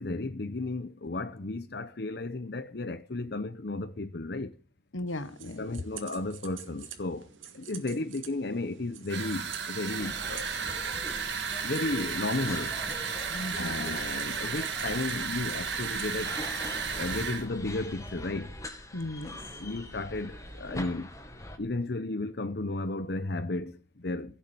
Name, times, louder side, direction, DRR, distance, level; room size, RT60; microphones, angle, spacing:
voice 1, 0.0-4.6 5.6-7.3 7.5-10.5 11.6-12.8 13.5-16.4 17.0-18.6 19.6-21.1 21.6-24.4, left 2 dB, 55° left, 0.8 m, -34 dB
voice 2, 4.9-5.8 13.3-14.1 18.9-19.5, left 1 dB, 80° left, 1.2 m, -37 dB
sound 1, 5.1-16.5, right 9 dB, 80° right, 2.1 m, -49 dB
sound 2, 9.1-17.5, right 6 dB, 60° right, 2.2 m, -34 dB
sound 3, 10.0-21.6, left 1 dB, 15° left, 1.8 m, -43 dB
16.5 x 7.2 x 7.8 m
head